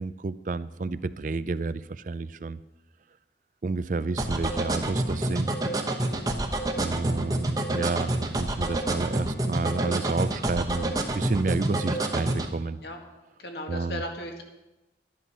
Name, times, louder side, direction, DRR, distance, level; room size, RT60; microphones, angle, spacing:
voice 1, 0.0-2.6 3.6-5.6 6.7-12.8 13.7-14.0, right 3 dB, 45° right, 15 dB, 0.4 m, -30 dB
sound 1, 4.2-12.5, right 1 dB, 20° right, 1.0 m, -27 dB
voice 2, 6.0-6.4 12.8-13.0 13.4-14.4, left 1 dB, 70° left, 3 dB, 1.9 m, -37 dB
12.5 x 11.0 x 5.6 m, 1.0 s
head